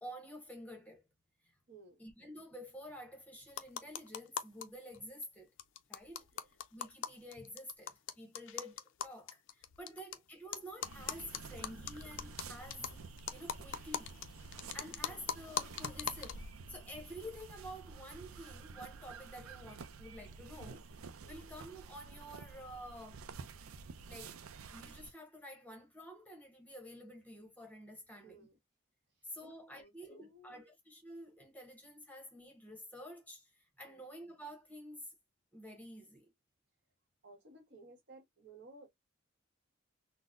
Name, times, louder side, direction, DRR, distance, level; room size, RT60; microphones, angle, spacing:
voice 1, 0.0-1.0 2.0-5.5 5.9-6.3 6.7-13.0 13.3-14.1 14.7-16.4 16.7-20.9 21.3-23.2 24.1-24.3 24.7-28.5 29.3-35.1 35.5-36.3, equal, 5° left, 0.9 m, -50 dB
voice 2, 1.7-2.0 6.3-6.5 15.1-15.3 21.2-21.5 28.2-28.6 29.4-30.7 33.9-34.0 37.2-38.9, right 2 dB, 55° right, 1.3 m, -58 dB
sound 1, 3.5-4.7 4.9-5.0 5.2-5.3 5.6-10.2 10.5-16.5, left 8 dB, 65° left, 0.4 m, -42 dB
sound 2, 10.8-25.1, right 4 dB, 85° right, 0.5 m, -51 dB
3.8 x 2.0 x 2.4 m
head